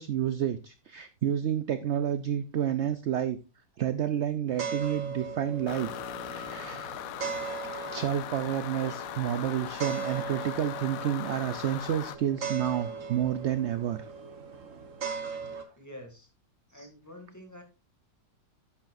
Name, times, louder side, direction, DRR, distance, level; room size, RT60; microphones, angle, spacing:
voice 1, 0.0-3.4 3.8-5.9 6.2-6.9 7.2-14.1, right 10 dB, 65° right, 11 dB, 0.6 m, -30 dB
sound 1, 4.5-15.6, right 5 dB, 50° right, 1.6 m, -39 dB
sound 2, 5.7-12.2, left 12 dB, 70° left, 0.9 m, -39 dB
voice 2, 15.8-16.3 16.7-17.6, left 1 dB, 10° left, 3 dB, 2.3 m, -47 dB
10.5 x 8.8 x 2.6 m, 0.28 s
omnidirectional pair, 1.8 m